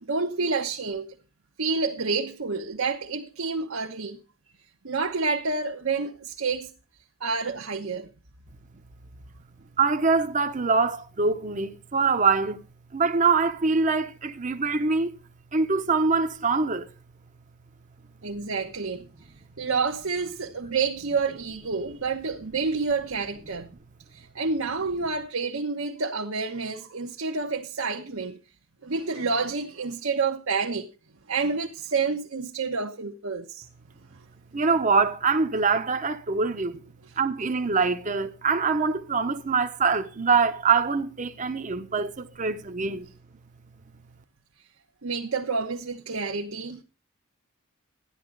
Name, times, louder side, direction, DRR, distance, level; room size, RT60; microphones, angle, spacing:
voice 1, 0.0-1.1 1.6-4.2 4.8-6.7 7.2-8.1 18.2-19.1 19.6-23.7 24.1-28.4 28.8-30.9 31.3-33.6 37.0-37.1 45.0-46.8, right 4 dB, 75° right, 1.1 m, -29 dB
voice 2, 9.8-12.6 12.9-15.1 15.5-16.9 34.5-36.8 37.2-43.1, right 4 dB, 35° right, 0.8 m, -24 dB
13.0 x 11.0 x 3.9 m
head